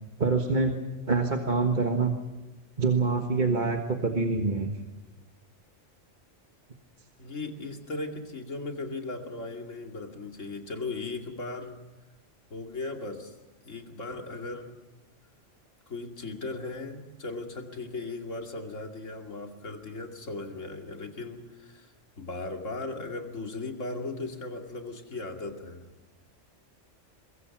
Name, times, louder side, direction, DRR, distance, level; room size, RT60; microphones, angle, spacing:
voice 1, 0.2-0.7 1.1-2.1 2.8-4.7, right 4 dB, 40° right, 4 dB, 1.6 m, -25 dB
voice 2, 7.2-11.8 12.5-13.3 13.6-14.8 15.9-25.8, left 3 dB, 80° left, 3 dB, 2.8 m, -37 dB
23.0 x 22.5 x 6.0 m, 1.1 s
omnidirectional pair, 1.3 m